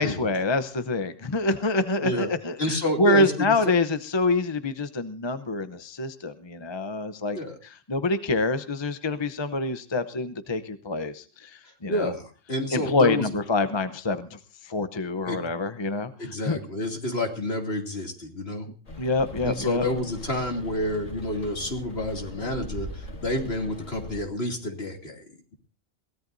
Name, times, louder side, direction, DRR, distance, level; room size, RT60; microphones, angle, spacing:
voice 1, 0.0-12.1 12.7-14.4 14.6-16.6 19.0-19.8, left 2 dB, 25° left, 10 dB, 0.7 m, -26 dB
voice 2, 2.6-3.5 7.3-7.5 11.9-13.4 15.2-15.4 16.2-18.7 19.4-25.3, left 1 dB, 50° left, 1 dB, 3.0 m, -29 dB
Rain, 18.8-24.2, left 1 dB, 70° left, 2.8 m, -40 dB
22.5 x 17.0 x 2.6 m, 0.37 s
omnidirectional pair, 1.3 m